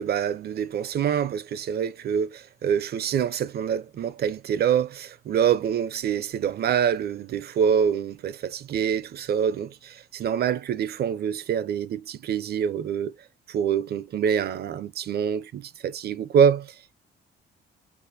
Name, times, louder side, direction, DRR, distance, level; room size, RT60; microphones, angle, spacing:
voice 1, 0.0-13.1 13.5-16.9, right 8 dB, 55° right, 0.5 m, -25 dB
4.4 x 2.5 x 2.5 m
cardioid pair, 90°, 20 cm